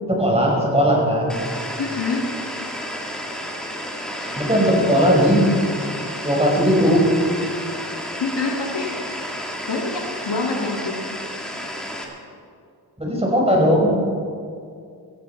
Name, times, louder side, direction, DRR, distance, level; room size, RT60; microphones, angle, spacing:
voice 1, 0.1-1.4 4.4-5.5 6.2-7.0 13.0-14.0, equal, 15° right, -2 dB, 4.6 m, -18 dB
sound 1, 1.3-12.0, equal, ahead, 2.3 m, -31 dB
voice 2, 1.8-2.3 8.2-8.9 9.7-11.0, left 3 dB, 75° left, 1 dB, 1.8 m, -25 dB
16.0 x 15.0 x 4.4 m, 2.3 s
wide cardioid pair, 90°, 40 cm